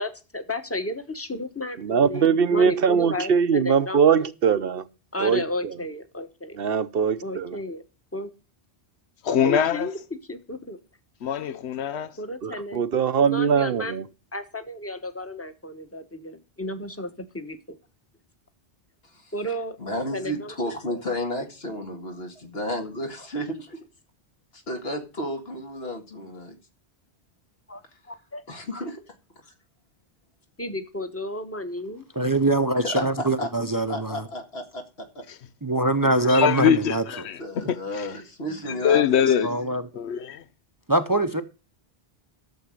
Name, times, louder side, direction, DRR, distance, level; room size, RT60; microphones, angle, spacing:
voice 1, 0.3-4.3 5.1-6.6 7.2-7.8 8.1-8.3 9.3-10.8 12.2-12.8 13.2-14.0 14.3-17.8 19.3-19.8 20.1-20.5 20.9-21.0 27.7-27.8 28.1-28.4 28.7-28.8 30.6-32.0, left 1 dB, 15° left, 1.1 m, -33 dB
voice 2, 1.8-4.8 5.2-5.4 6.6-7.6 12.4-14.0, right 7 dB, 65° right, 0.9 m, -21 dB
voice 3, 9.2-9.9 11.2-12.1 36.0-38.1 38.8-39.5 39.9-40.4, left 8 dB, 85° left, 1.0 m, -23 dB
voice 4, 19.8-23.8 24.5-26.6 28.5-29.1 29.4-29.5 32.8-33.5 33.9-35.3 37.4-39.7, left 1 dB, 70° left, 2.2 m, -32 dB
voice 5, 32.2-34.2 35.6-37.0 39.4-39.8 40.9-41.4, right 2 dB, 20° right, 0.7 m, -23 dB
12.0 x 7.2 x 6.3 m
omnidirectional pair, 1.1 m